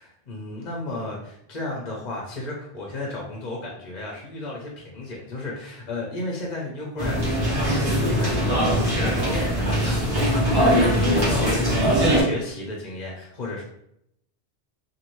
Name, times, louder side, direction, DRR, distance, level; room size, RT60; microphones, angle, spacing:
voice 1, 0.0-13.6, left 2 dB, 50° left, -2 dB, 0.7 m, -34 dB
sound 1, 7.0-12.2, equal, 25° right, 1.0 m, -21 dB
2.6 x 2.6 x 3.0 m, 0.75 s
omnidirectional pair, 1.1 m